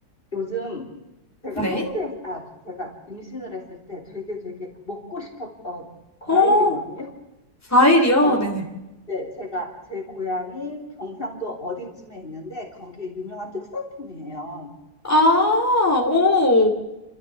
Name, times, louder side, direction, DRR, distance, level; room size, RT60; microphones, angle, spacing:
voice 1, 0.3-0.9 1.4-5.9 6.2-7.1 8.2-8.5 9.1-14.7, left 1 dB, 35° left, 2 dB, 3.3 m, -32 dB
voice 2, 6.3-6.7 7.7-8.6 15.0-16.7, left 1 dB, 10° left, 0 dB, 3.1 m, -17 dB
30.0 x 13.0 x 7.1 m, 1.0 s
omnidirectional pair, 1.7 m